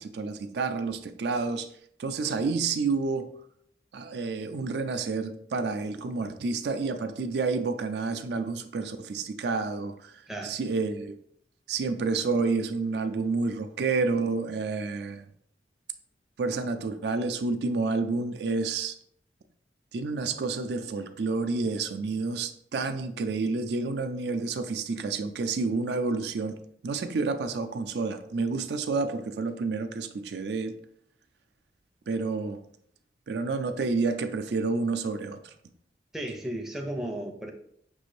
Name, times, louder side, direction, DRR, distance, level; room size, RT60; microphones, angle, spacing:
voice 1, 0.0-1.7 2.0-3.3 3.9-10.1 10.4-11.1 11.7-15.3 16.4-19.0 19.9-26.5 26.8-30.7 32.1-32.6 33.3-35.5, right 4 dB, 70° right, 8 dB, 0.4 m, -29 dB
voice 2, 10.3-10.6 36.1-37.5, right 1 dB, ahead, 1 dB, 0.5 m, -34 dB
6.1 x 2.5 x 3.1 m, 0.67 s
head